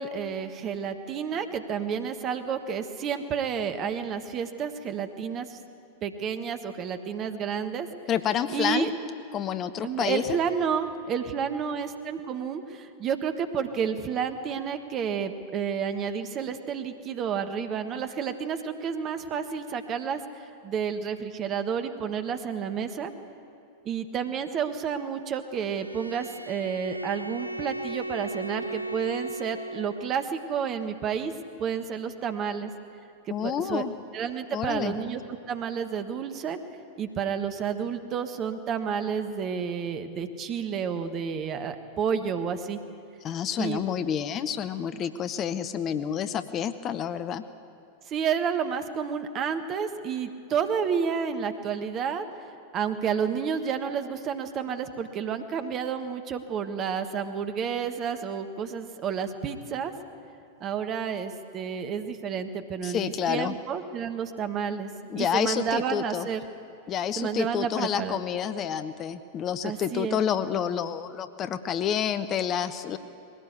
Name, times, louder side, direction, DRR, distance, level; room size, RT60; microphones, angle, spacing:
voice 1, 0.0-5.6 6.0-7.9 8.5-8.9 9.8-23.1 23.8-31.3 31.6-32.7 33.3-33.8 34.1-35.2 35.5-36.6 37.0-42.8 43.6-43.8 48.1-52.2 52.7-59.9 60.6-66.4 67.2-68.2 69.6-70.2, right 7 dB, 30° right, 8 dB, 1.4 m, -30 dB
voice 2, 8.1-8.9 9.3-10.2 33.3-33.9 34.5-34.9 43.2-47.4 62.8-63.5 65.1-66.3 66.9-73.0, left 9 dB, 30° left, 12 dB, 0.8 m, -29 dB
Bowed string instrument, 25.5-30.3, right 1 dB, 85° right, 0.4 m, -36 dB
21.0 x 17.5 x 8.3 m, 2.6 s
figure-of-eight pair, 90°, 0 cm